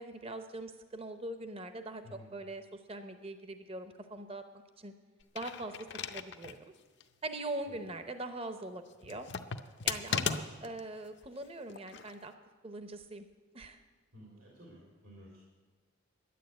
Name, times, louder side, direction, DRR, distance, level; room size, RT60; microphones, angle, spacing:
voice 1, 0.0-4.4 4.8-4.9 5.3-6.7 7.2-9.3 9.8-12.3 12.6-13.3 13.5-13.8, right 2 dB, 25° right, 8 dB, 0.7 m, -42 dB
sound 1, 5.2-6.6 7.0-7.1 9.0-10.8 11.7-12.2, left 7 dB, 55° left, 0.6 m, -36 dB
voice 2, 14.1-15.6, left 1 dB, 80° right, -4 dB, 3.0 m, -54 dB
11.0 x 9.8 x 7.9 m, 1.4 s
head